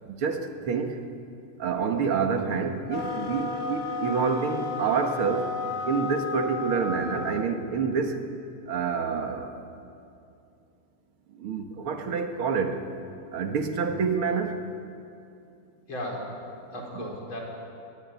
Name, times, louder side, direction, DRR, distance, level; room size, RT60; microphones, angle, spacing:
voice 1, 0.1-1.0 1.6-5.5 5.9-8.2 8.7-9.5 11.4-12.8 13.3-14.6 16.9-17.0, right 5 dB, 80° right, 5 dB, 2.5 m, -27 dB
sound 1, 2.9-7.5, left 3 dB, 25° left, 1.5 m, -33 dB
voice 2, 15.9-17.4, left 1 dB, 65° left, -1 dB, 5.4 m, -36 dB
21.5 x 21.0 x 9.6 m, 2.6 s
omnidirectional pair, 2.3 m